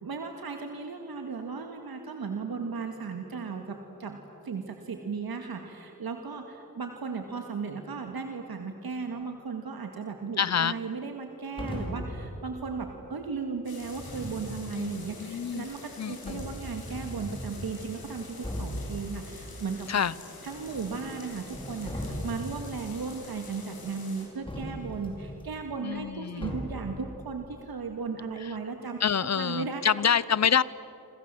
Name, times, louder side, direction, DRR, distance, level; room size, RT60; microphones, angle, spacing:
voice 1, 0.0-4.2 4.5-4.6 4.9-6.4 6.8-15.8 16.1-18.3 18.6-19.2 19.6-19.9 20.4-21.9 22.2-29.8, right 5 dB, 80° right, 4 dB, 2.1 m, -36 dB
voice 2, 10.4-10.7 14.8-15.6 16.0-16.4 19.9-20.1 25.8-26.5 29.0-30.6, left 7 dB, 50° left, 19 dB, 0.8 m, -27 dB
sound 1, 11.6-12.2 13.8-14.5 15.7-15.8 16.2-17.5 18.0-18.1 18.4-18.9 20.5-21.1 21.4-22.5 24.5-25.4 26.4-26.9, equal, 15° left, 5.6 m, -37 dB
sound 2, 13.6-24.2, left 3 dB, 85° left, 7.6 m, -47 dB
28.0 x 26.0 x 7.7 m, 3.0 s
wide cardioid pair, 115°, 36 cm